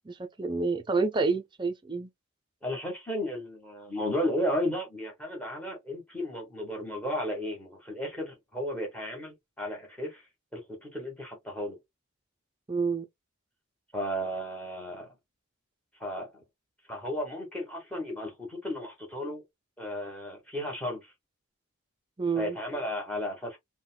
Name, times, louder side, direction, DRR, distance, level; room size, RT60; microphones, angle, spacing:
voice 1, 0.1-2.1 12.7-13.1 22.2-22.6, right 4 dB, 20° right, 0.4 m, -28 dB
voice 2, 2.6-10.3 10.5-11.8 13.9-15.1 16.0-16.4 16.9-19.4 19.8-21.1 22.4-23.6, equal, 5° left, 1.2 m, -34 dB
3.9 x 2.2 x 2.2 m
head